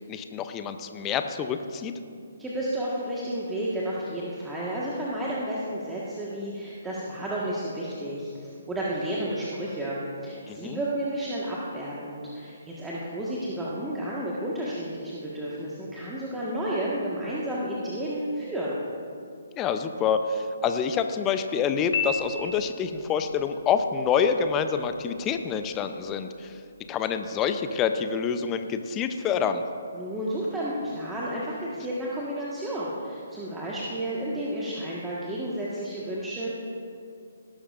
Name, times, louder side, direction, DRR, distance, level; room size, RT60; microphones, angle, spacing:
voice 1, 0.1-1.9 10.5-10.8 19.6-26.6 26.9-29.6, left 6 dB, 20° left, 8 dB, 0.7 m, -27 dB
voice 2, 2.4-18.8 29.9-36.5, right 1 dB, 10° right, -7 dB, 1.6 m, -31 dB
Piano, 21.9-23.0, left 6 dB, 50° left, 2.9 m, -31 dB
18.5 x 12.5 x 2.6 m, 2.4 s
figure-of-eight pair, 135°, 0 cm